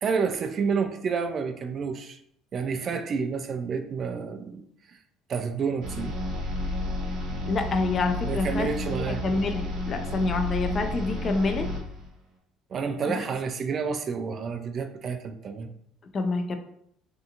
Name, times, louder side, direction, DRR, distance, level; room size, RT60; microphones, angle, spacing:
voice 1, 0.0-2.2 2.5-4.6 5.3-6.1 8.3-9.2 12.7-15.7, right 5 dB, 45° right, 6 dB, 0.3 m, -29 dB
sound 1, 5.8-12.1, left 1 dB, 65° right, 0.9 m, -31 dB
voice 2, 7.5-11.7 13.1-13.2 16.1-16.6, left 3 dB, 40° left, 6 dB, 0.4 m, -28 dB
2.6 x 2.4 x 2.7 m, 0.71 s
supercardioid pair, 95°, 0 cm